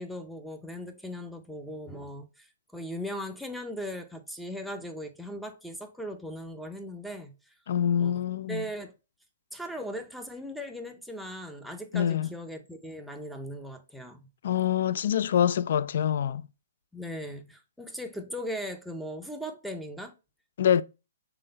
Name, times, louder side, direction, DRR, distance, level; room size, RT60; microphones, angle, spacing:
voice 1, 0.0-7.4 8.0-8.9 9.5-14.3 16.9-20.1, equal, ahead, 0.5 m, -38 dB
voice 2, 7.7-8.6 11.9-12.3 14.4-16.4 20.6-20.8, left 9 dB, 60° left, 0.3 m, -25 dB
3.8 x 3.3 x 3.9 m
hypercardioid pair, 150°, 0 cm